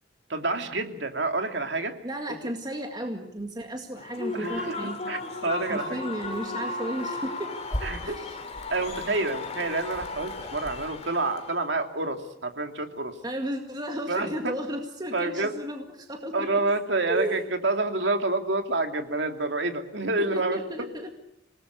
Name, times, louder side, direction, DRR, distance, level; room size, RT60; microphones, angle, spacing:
voice 1, 0.3-1.9 4.3-4.8 5.1-6.0 7.8-8.2 8.7-13.1 14.1-14.5 15.1-15.6 16.3-20.9, right 2 dB, 65° right, 5 dB, 2.7 m, -28 dB
voice 2, 2.0-5.0 5.7-7.5 8.0-8.4 13.2-16.5 17.1-17.4 20.3-21.1, right 1 dB, 20° right, 3 dB, 2.1 m, -34 dB
sound 1, 3.4-3.5 4.0-4.1 4.5-4.9 5.7-5.9 6.2-6.4 7.0-10.8, equal, 20° left, 3.2 m, -40 dB
Human voice / Cheering / Applause, 4.0-11.6, left 3 dB, 35° left, 3.0 m, -35 dB
27.0 x 19.5 x 8.1 m, 0.78 s
head